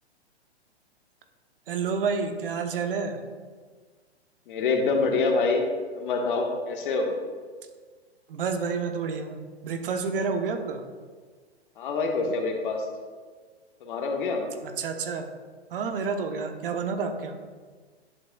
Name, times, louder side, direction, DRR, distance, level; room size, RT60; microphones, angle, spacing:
voice 1, 1.7-3.2 8.3-10.8 14.6-15.3 15.7-17.4, right 5 dB, 55° right, 6 dB, 1.0 m, -29 dB
voice 2, 4.5-5.6 5.9-7.1 11.8-12.8 13.8-14.5, left 4 dB, 50° left, 2 dB, 1.4 m, -26 dB
11.0 x 7.5 x 2.3 m, 1.5 s
figure-of-eight pair, 120°, 33 cm